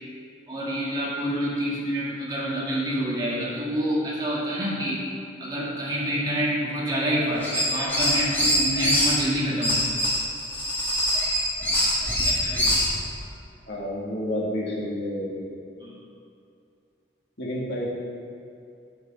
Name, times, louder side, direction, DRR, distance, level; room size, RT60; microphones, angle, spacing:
voice 1, 0.5-5.0 5.4-9.8 12.2-12.7 15.8-16.0, equal, 20° right, -6 dB, 2.1 m, -27 dB
sound 1, 7.4-9.2 9.6-12.9, equal, 10° left, 1.8 m, -24 dB
voice 2, 13.7-15.5 17.4-17.9, left 1 dB, 65° left, -4 dB, 2.2 m, -30 dB
8.3 x 8.2 x 6.2 m, 2.5 s
head